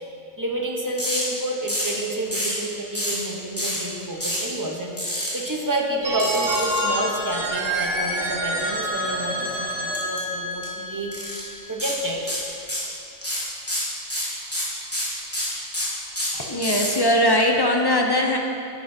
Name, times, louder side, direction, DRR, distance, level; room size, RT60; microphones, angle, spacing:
voice 1, 0.4-11.1 11.7-12.4, right 1 dB, 20° right, 0 dB, 0.7 m, -29 dB
sound 1, 1.0-1.2 1.7-2.0 2.3-2.6 2.9-3.2 3.6-3.8 4.2-4.5 5.0-5.3 6.2-6.8 9.9-10.2 10.5-10.6 11.1-11.4 11.8-12.0 12.3-12.9 13.2-16.9, equal, 10° left, 2.1 m, -27 dB
Telephone, 6.0-11.8, equal, 75° right, 1.6 m, -27 dB
voice 2, 16.4-18.4, left 1 dB, 35° left, 1 dB, 0.3 m, -20 dB
11.0 x 9.2 x 2.7 m, 2.7 s
omnidirectional pair, 1.3 m